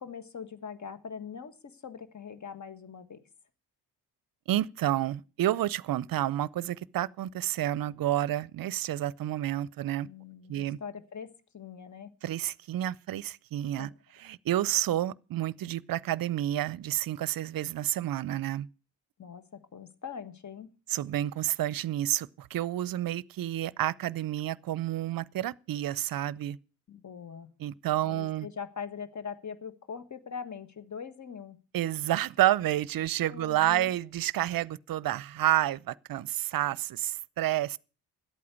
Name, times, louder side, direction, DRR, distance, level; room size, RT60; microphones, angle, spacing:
voice 1, 0.0-1.5 1.8-3.2 10.0-12.1 13.8-13.9 19.2-20.7 26.9-27.5 27.9-31.6 33.3-33.9, left 6 dB, 40° left, 1.6 m, -42 dB
voice 2, 4.5-10.1 10.5-10.8 12.2-18.7 20.9-26.6 27.6-28.5 31.7-37.8, right 13 dB, 50° right, 0.6 m, -30 dB
12.0 x 8.5 x 8.4 m
hypercardioid pair, 40°, 43 cm